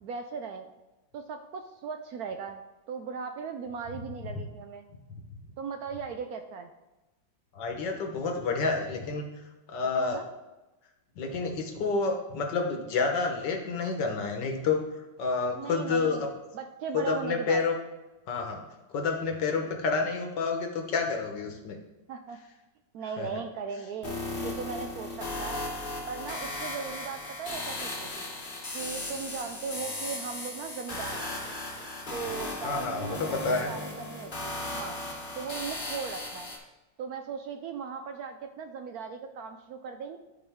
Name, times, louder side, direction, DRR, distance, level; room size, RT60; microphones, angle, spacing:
voice 1, 0.0-0.7 1.1-2.6 2.9-4.8 5.6-6.7 10.0-10.3 15.5-16.3 16.5-17.6 22.1-22.4 22.9-25.6 26.1-28.3 28.7-31.4 32.1-35.0 35.4-36.5 37.0-40.2, right 5 dB, 70° right, 6 dB, 0.9 m, -38 dB
voice 2, 7.5-9.3 9.7-10.2 11.2-14.9 15.2-16.3 17.1-17.8 18.3-18.6 18.9-21.8 23.2-23.3 32.6-33.7, left 4 dB, 70° left, 3 dB, 1.8 m, -29 dB
sound 1, 24.0-36.6, left 2 dB, 30° left, 1.3 m, -36 dB
12.0 x 4.7 x 3.6 m, 1.0 s
omnidirectional pair, 2.0 m